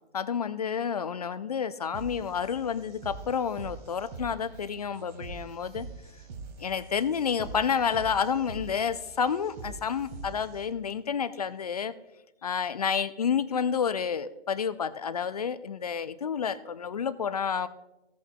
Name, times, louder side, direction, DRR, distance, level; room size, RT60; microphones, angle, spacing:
voice 1, 0.1-5.9 6.6-11.9 12.4-17.7, left 7 dB, 40° left, 14 dB, 0.4 m, -30 dB
sound 1, 1.9-10.9, right 4 dB, 40° right, 2.2 m, -44 dB
16.0 x 8.0 x 2.3 m, 0.96 s
figure-of-eight pair, 135°, 33 cm